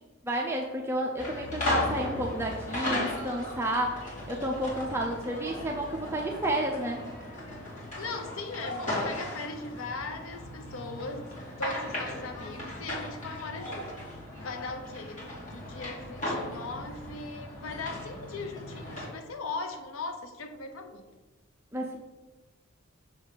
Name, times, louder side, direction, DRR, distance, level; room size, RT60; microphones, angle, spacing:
voice 1, 0.2-7.0 21.7-22.0, right 1 dB, 10° right, -1 dB, 0.6 m, -31 dB
sound 1, 1.2-19.1, left 1 dB, 40° left, 2.6 m, -36 dB
voice 2, 8.0-21.1, left 3 dB, 80° left, 6 dB, 0.7 m, -39 dB
6.4 x 6.3 x 4.0 m, 1.2 s
head